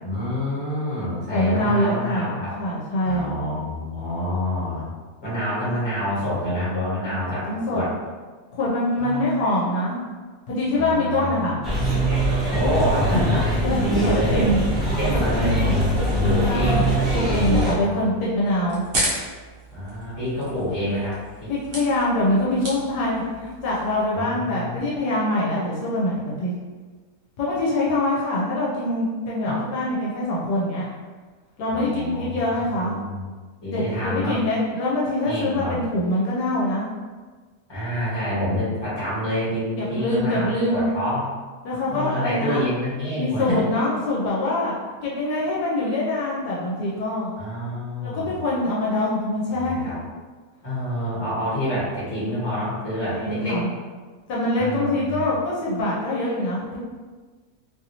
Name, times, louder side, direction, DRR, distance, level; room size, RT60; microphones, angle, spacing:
voice 1, 0.0-2.5 3.0-4.9 5.2-7.9 9.0-9.2 10.7-11.2 12.5-14.4 15.0-15.5 16.2-16.8 17.6-18.0 19.7-21.5 24.1-24.9 29.4-29.6 31.7-33.3 33.6-34.3 35.2-35.8 37.7-41.2 41.8-43.6 47.4-48.3 49.5-50.0 50.6-53.6 54.6-55.2, equal, 15° left, -10 dB, 1.3 m, -27 dB
voice 2, 1.3-3.3 7.4-7.8 8.5-10.0 10.5-11.6 13.6-14.6 15.1-16.1 16.4-16.9 17.1-18.8 21.5-26.5 27.4-30.9 31.6-32.9 33.7-36.9 39.8-40.9 41.6-42.6 43.1-44.7 45.0-47.3 48.0-49.9 53.1-53.7 54.3-56.8, left 1 dB, 75° left, -5 dB, 1.2 m, -24 dB
sound 1, 11.6-17.7, equal, ahead, 0.4 m, -22 dB
sound 2, 15.4-24.1, right 1 dB, 55° right, 0.7 m, -35 dB
2.9 x 2.6 x 2.8 m, 1.4 s
omnidirectional pair, 1.8 m